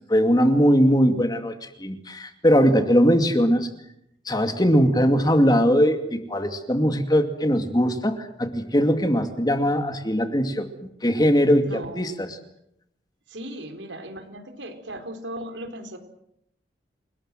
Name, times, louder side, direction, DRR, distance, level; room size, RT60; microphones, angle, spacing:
voice 1, 0.1-3.7 4.3-10.7 11.0-12.1, equal, 20° left, 7 dB, 2.3 m, -20 dB
voice 2, 11.6-12.2 13.3-16.0, right 1 dB, 85° right, 7 dB, 4.4 m, -37 dB
29.5 x 19.5 x 7.7 m, 0.79 s
head